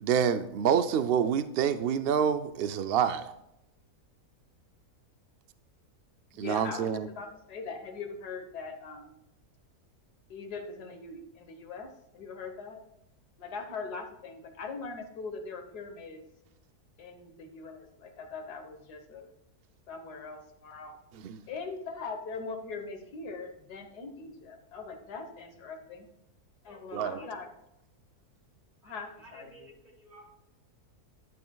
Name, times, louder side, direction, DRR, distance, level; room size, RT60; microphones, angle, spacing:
voice 1, 0.0-3.3 6.4-7.1 21.2-21.4 26.9-27.2, right 8 dB, 85° right, 0.5 m, -27 dB
voice 2, 6.3-9.1 10.3-12.8 13.4-16.2 17.0-19.3 19.9-21.0 21.5-26.1 26.6-27.5 28.8-29.7, left 4 dB, 90° left, 1.8 m, -41 dB
voice 3, 26.7-27.3 28.8-30.3, right 2 dB, 30° right, 4.0 m, -55 dB
12.0 x 8.6 x 2.3 m
omnidirectional pair, 1.6 m